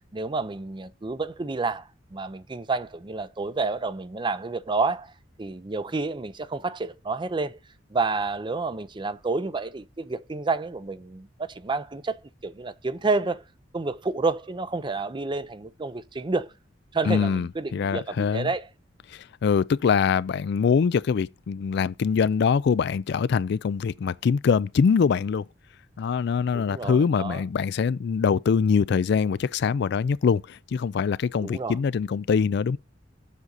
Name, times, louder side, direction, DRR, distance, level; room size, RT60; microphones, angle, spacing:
voice 1, 0.1-5.1 5.4-7.6 7.9-13.4 13.7-16.5 16.9-18.7 26.5-27.4 31.4-31.8, right 3 dB, 25° right, 0.5 m, -29 dB
voice 2, 17.1-18.5 19.1-25.4 26.0-32.8, left 6 dB, 65° left, 0.3 m, -23 dB
7.4 x 6.5 x 4.0 m
head